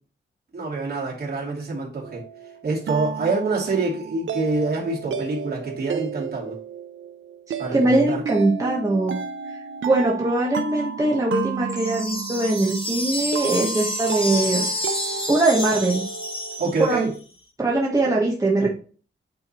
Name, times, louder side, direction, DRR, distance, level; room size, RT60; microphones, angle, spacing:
voice 1, 0.5-2.2 2.6-6.5 7.6-8.2 16.6-17.1, right 3 dB, 50° right, -3 dB, 2.8 m, -26 dB
sound 1, 2.0-16.8, right 6 dB, 70° right, 0.7 m, -32 dB
voice 2, 7.5-9.1 9.8-14.7 15.3-16.0 16.8-17.0 17.6-18.7, right 2 dB, 15° right, -3 dB, 1.2 m, -21 dB
sound 2, 11.7-17.2, left 1 dB, 25° left, 1.8 m, -29 dB
8.9 x 3.7 x 4.4 m, 0.40 s
wide cardioid pair, 135°, 21 cm